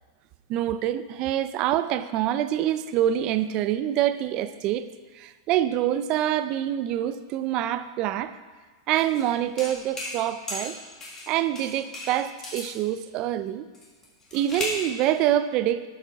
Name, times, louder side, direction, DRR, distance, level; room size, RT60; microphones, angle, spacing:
voice 1, 0.5-4.9 5.1-8.4 8.9-10.8 11.3-13.7 14.3-15.9, right 12 dB, 30° right, 13 dB, 0.4 m, -26 dB
sound 1, 9.0-9.3 9.6-10.2 10.5-11.3 11.6-12.7 13.7-14.9, left 2 dB, 15° left, 1.7 m, -35 dB
10.0 x 7.2 x 4.6 m, 1.4 s
supercardioid pair, 165°, 3 cm